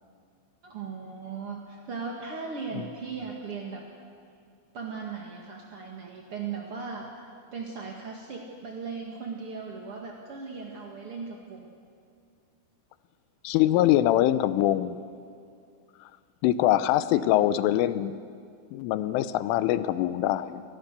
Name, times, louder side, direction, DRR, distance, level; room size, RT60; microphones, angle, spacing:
voice 1, 0.6-3.9 4.7-11.7, right 5 dB, 55° right, 0 dB, 1.6 m, -38 dB
voice 2, 13.4-15.0 16.4-18.2 18.7-20.6, left 13 dB, 85° left, 13 dB, 3.3 m, -23 dB
28.5 x 24.0 x 6.8 m, 2.3 s
omnidirectional pair, 5.6 m